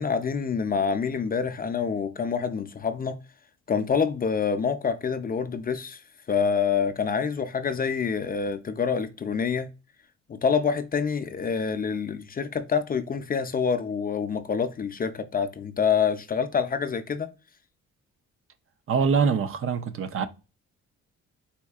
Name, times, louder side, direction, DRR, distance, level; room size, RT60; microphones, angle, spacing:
voice 1, 0.0-3.2 3.7-6.0 6.3-9.7 10.3-17.3, left 6 dB, 30° left, 0.4 m, -26 dB
voice 2, 18.9-20.3, right 6 dB, 45° right, 0.5 m, -24 dB
4.2 x 2.6 x 2.3 m
cardioid pair, 90°, 30 cm